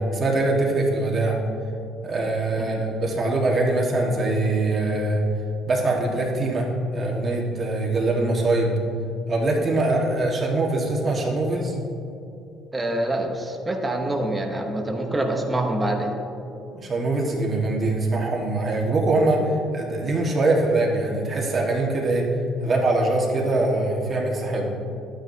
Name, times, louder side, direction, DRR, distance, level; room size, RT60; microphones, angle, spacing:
voice 1, 0.0-1.4 2.0-5.2 5.7-8.7 9.3-11.7 16.7-22.3 22.6-24.7, right 2 dB, 30° right, -1 dB, 1.5 m, -23 dB
voice 2, 12.7-16.1, right 1 dB, 15° right, 2 dB, 0.9 m, -26 dB
11.5 x 9.2 x 2.8 m, 2.7 s
cardioid pair, 140°, 0 cm